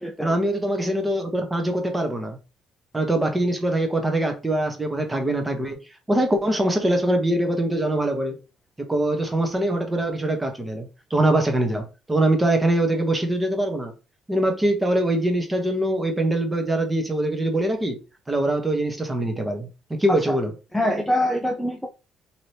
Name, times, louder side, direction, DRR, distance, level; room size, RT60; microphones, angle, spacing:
voice 1, 0.2-2.4 2.9-5.8 6.1-8.4 8.8-13.9 14.3-18.0 18.3-20.5, right 1 dB, 15° right, 0.8 m, -23 dB
voice 2, 20.7-21.9, left 1 dB, 5° left, 0.5 m, -24 dB
2.9 x 2.7 x 3.2 m
cardioid pair, 110°, 0 cm